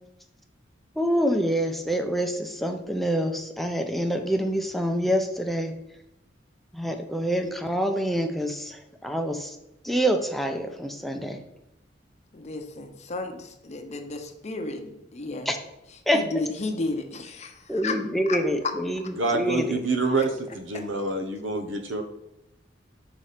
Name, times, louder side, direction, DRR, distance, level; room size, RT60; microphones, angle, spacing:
voice 1, 1.0-5.7 6.7-9.6 9.8-11.4 15.5-15.6 16.1-16.2 17.7-19.8, equal, ahead, 4 dB, 0.5 m, -26 dB
voice 2, 12.3-15.5 16.1-17.9 18.3-18.4 20.2-20.3, left 2 dB, 40° left, 5 dB, 0.7 m, -33 dB
voice 3, 19.2-22.1, right 3 dB, 90° right, 6 dB, 0.9 m, -27 dB
5.7 x 4.1 x 5.0 m, 0.86 s
head